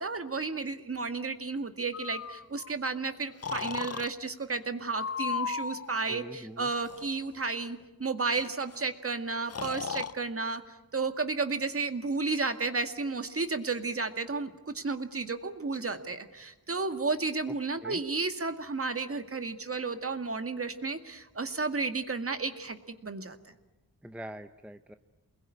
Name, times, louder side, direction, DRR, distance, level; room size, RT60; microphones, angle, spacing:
voice 1, 0.0-23.4, right 4 dB, 40° right, 8 dB, 2.0 m, -33 dB
Breathing, 1.9-2.7 3.4-4.1 4.9-5.9 6.8-7.2 8.4-8.5 8.7-8.8 9.5-10.1, left 6 dB, 45° left, 0.9 m, -35 dB
voice 2, 6.1-6.7 17.5-17.6 17.8-18.0 24.0-24.9, right 1 dB, 5° right, 9 dB, 0.9 m, -43 dB
28.5 x 21.0 x 9.9 m, 1.1 s
wide cardioid pair, 105°, 36 cm